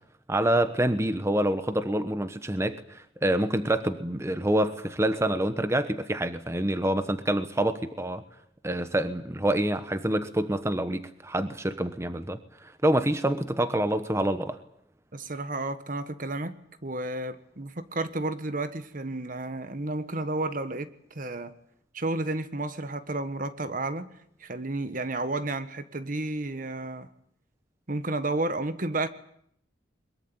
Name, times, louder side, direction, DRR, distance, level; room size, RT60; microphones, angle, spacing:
voice 1, 0.3-8.2 8.6-14.6, right 1 dB, 15° right, 10 dB, 1.1 m, -27 dB
voice 2, 15.1-21.5 21.9-27.1 27.9-29.1, right 2 dB, 45° right, 12 dB, 1.4 m, -32 dB
22.5 x 22.0 x 9.1 m, 0.69 s
head